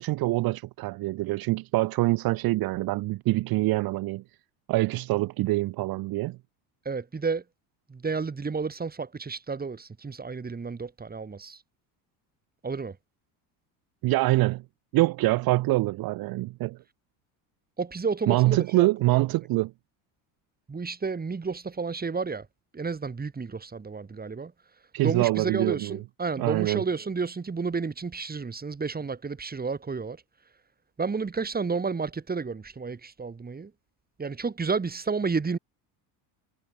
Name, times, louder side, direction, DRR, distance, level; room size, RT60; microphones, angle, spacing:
voice 1, 0.0-4.2 4.7-6.4 14.0-14.6 14.9-16.8 18.3-19.7 24.9-26.0 26.4-26.8, right 19 dB, 55° right, 0.8 m, -25 dB
voice 2, 6.8-7.4 7.9-11.6 12.6-13.0 17.8-19.2 20.7-22.5 22.7-24.5 25.0-30.2 31.0-33.7 34.2-35.6, right 4 dB, 20° right, 4.1 m, -31 dB
supercardioid pair, 100°, 44 cm